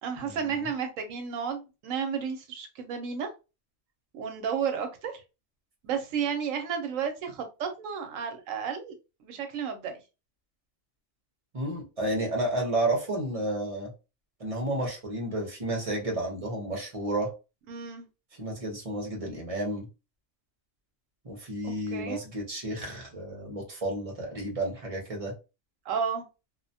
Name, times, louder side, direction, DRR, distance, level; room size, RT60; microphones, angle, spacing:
voice 1, 0.0-3.3 4.1-5.2 5.8-8.9 9.2-10.0 17.7-18.0 21.6-22.2 25.9-26.2, right 7 dB, 75° right, 0.9 m, -32 dB
voice 2, 11.5-13.9 14.4-17.3 18.4-19.9 21.2-25.3, right 1 dB, 35° right, 0.6 m, -31 dB
2.4 x 2.1 x 2.6 m
omnidirectional pair, 1.4 m